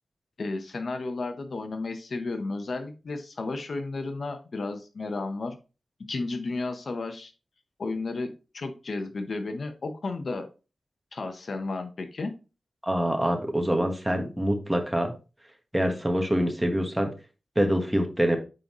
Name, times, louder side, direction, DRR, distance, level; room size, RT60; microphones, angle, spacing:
voice 1, 0.4-5.6 6.1-7.3 7.8-10.5 11.1-12.3, left 3 dB, 60° left, 7 dB, 1.0 m, -33 dB
voice 2, 12.8-15.1 15.7-17.1 17.5-18.4, equal, 10° right, 4 dB, 1.4 m, -25 dB
8.9 x 4.0 x 3.1 m, 0.32 s
wide cardioid pair, 80°, 0 cm